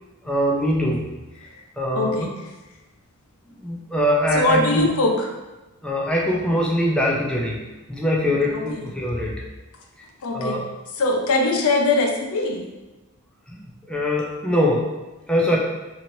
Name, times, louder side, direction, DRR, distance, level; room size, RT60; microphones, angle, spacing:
voice 1, 0.2-1.1 1.8-2.3 3.5-4.9 5.8-7.6 7.9-9.4 10.3-10.6 13.5-14.9 15.3-15.6, equal, 5° left, -3 dB, 0.4 m, -22 dB
voice 2, 1.9-2.3 4.3-5.3 8.5-8.9 10.2-10.6 11.0-12.7, left 2 dB, 70° left, 2 dB, 0.5 m, -22 dB
3.0 x 2.8 x 2.6 m, 1.1 s
head